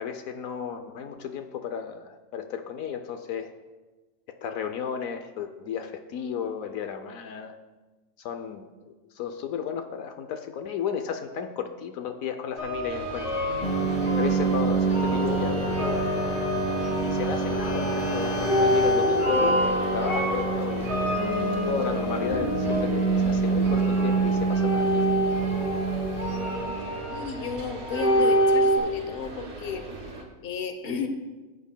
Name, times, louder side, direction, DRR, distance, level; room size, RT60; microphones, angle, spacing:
voice 1, 0.0-3.5 4.3-7.6 8.2-13.4 14.2-16.1 17.0-21.4 21.7-25.1, left 7 dB, 80° left, 7 dB, 1.1 m, -33 dB
sound 1, 12.6-28.8, equal, 10° right, 2.0 m, -28 dB
sound 2, 12.9-30.2, right 3 dB, 55° right, 1.7 m, -40 dB
sound 3, 13.6-26.8, right 4 dB, 30° left, 1.4 m, -27 dB
voice 2, 27.0-29.9 30.4-31.1, left 6 dB, 50° left, 6 dB, 1.0 m, -33 dB
16.5 x 8.1 x 2.2 m, 1.2 s
omnidirectional pair, 1.4 m